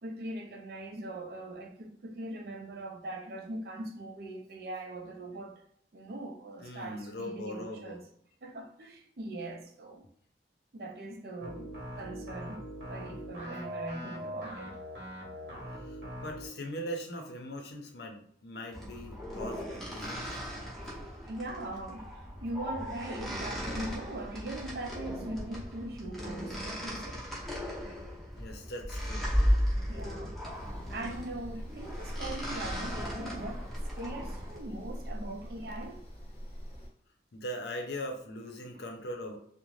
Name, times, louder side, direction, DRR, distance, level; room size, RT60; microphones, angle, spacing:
voice 1, 0.0-5.6 5.9-8.0 8.4-10.0 10.7-12.6 12.9-14.8 21.3-27.2 29.9-30.4 30.9-36.0, right 1 dB, 60° right, 0.4 m, -41 dB
voice 2, 6.6-8.0 15.7-20.4 28.3-29.3 37.3-39.4, equal, 70° left, 0.6 m, -40 dB
sound 1, 11.4-16.5, equal, 75° right, 0.9 m, -42 dB
sound 2, 18.7-34.6, equal, ahead, 0.6 m, -36 dB
sound 3, 30.5-36.9, equal, 40° left, 0.9 m, -43 dB
2.5 x 2.1 x 3.1 m
head